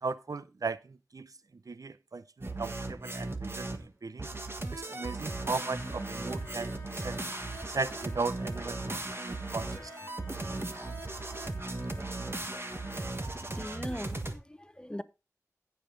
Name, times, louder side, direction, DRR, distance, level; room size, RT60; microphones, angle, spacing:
voice 1, 0.0-1.3 1.7-4.3 4.7-7.2 7.7-9.9, right 4 dB, 85° right, 0.5 m, -37 dB
sound 1, 2.4-3.9 4.2-14.3, right 2 dB, 40° right, 1.4 m, -37 dB
Trumpet, 5.1-13.2, left 2 dB, 40° left, 1.5 m, -52 dB
voice 2, 13.6-15.0, left 1 dB, 15° left, 0.7 m, -40 dB
15.5 x 5.4 x 3.7 m
wide cardioid pair, 50°, 6 cm